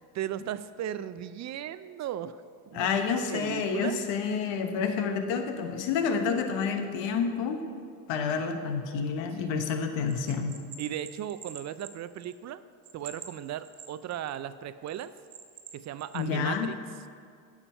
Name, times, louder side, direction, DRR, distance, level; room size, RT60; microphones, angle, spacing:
voice 1, 0.1-2.4 2.7-2.9 3.3-4.0 9.4-9.7 10.8-12.6 12.9-15.1 15.7-16.8, right 11 dB, 40° right, 14 dB, 0.4 m, -36 dB
voice 2, 2.7-7.6 8.1-10.5 16.1-16.7, left 6 dB, 65° left, 7 dB, 1.2 m, -29 dB
Bell, 10.1-12.5 12.8-14.4 14.9-16.2, right 8 dB, 55° right, 1.1 m, -46 dB
9.9 x 7.2 x 5.6 m, 2.3 s
hypercardioid pair, 75°, 47 cm